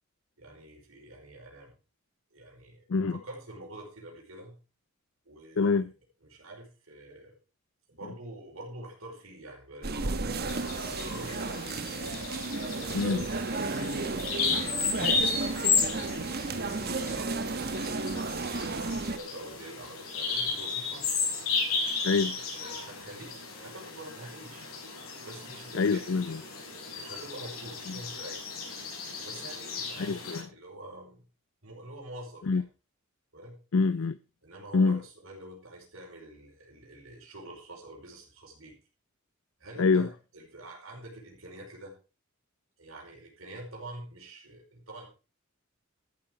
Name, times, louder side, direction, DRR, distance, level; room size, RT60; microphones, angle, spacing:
voice 1, 0.4-1.7 2.3-2.8 3.1-4.6 5.3-5.9 6.2-7.4 7.9-10.7 11.0-12.2 12.7-13.9 15.9-21.1 22.5-24.7 25.2-26.0 27.0-28.4 29.2-31.2 31.6-32.6 33.3-33.6 34.4-38.8 39.6-41.9 42.8-45.1, right 1 dB, 75° right, 5.2 m, -46 dB
voice 2, 5.6-5.9 12.9-13.3 15.0-15.1 22.0-22.4 25.7-26.4 27.9-28.0 30.0-30.5 32.5-32.6 33.7-34.2 34.7-35.0 39.8-40.1, left 4 dB, 70° left, 0.5 m, -25 dB
sound 1, 9.8-19.2, right 3 dB, 50° right, 1.2 m, -33 dB
Bird vocalization bird call bird song, 10.5-30.4, left 5 dB, 90° left, 5.9 m, -34 dB
13.5 x 8.7 x 4.8 m
head